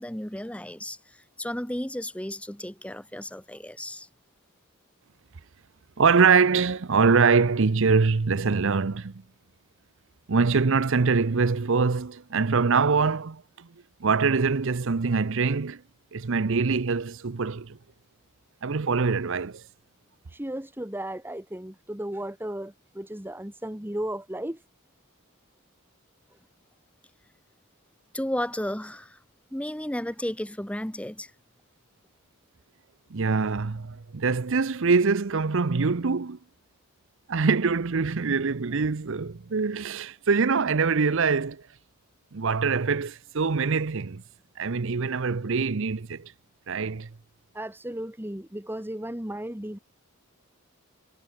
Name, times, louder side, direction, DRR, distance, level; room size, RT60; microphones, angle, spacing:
voice 1, 0.0-4.1 28.1-29.2 29.5-31.3, left 1 dB, 5° left, 1.4 m, -33 dB
voice 2, 6.0-9.1 10.3-13.7 14.0-15.8 16.1-17.8 18.6-19.6 33.1-36.4 37.3-41.6 42.3-44.2 44.6-46.3 46.7-47.1, right 4 dB, 65° right, 0.7 m, -24 dB
voice 3, 20.3-24.6 47.5-49.8, right 1 dB, 10° right, 1.7 m, -35 dB
head